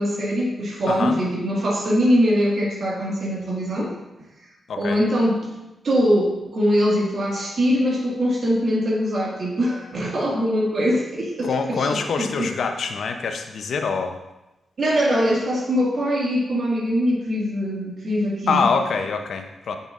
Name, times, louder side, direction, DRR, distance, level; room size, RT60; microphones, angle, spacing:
voice 1, 0.0-3.9 4.8-5.5 5.8-12.5 14.8-18.6, equal, 60° right, -4 dB, 1.8 m, -22 dB
voice 2, 0.9-1.2 4.7-5.0 11.4-14.2 18.5-19.8, left 5 dB, 70° left, 6 dB, 0.6 m, -25 dB
7.4 x 5.5 x 2.4 m, 0.99 s
cardioid pair, 60°, 0 cm